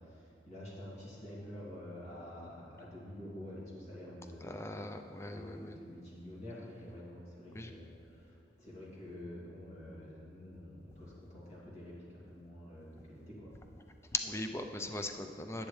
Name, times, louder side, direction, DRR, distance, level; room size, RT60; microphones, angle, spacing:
voice 1, 0.0-4.4 5.3-13.5, left 1 dB, 40° left, -7 dB, 2.4 m, -48 dB
voice 2, 4.4-5.8 7.5-7.7 14.1-15.7, left 2 dB, 15° left, 5 dB, 0.5 m, -39 dB
10.5 x 9.1 x 3.3 m, 2.6 s
head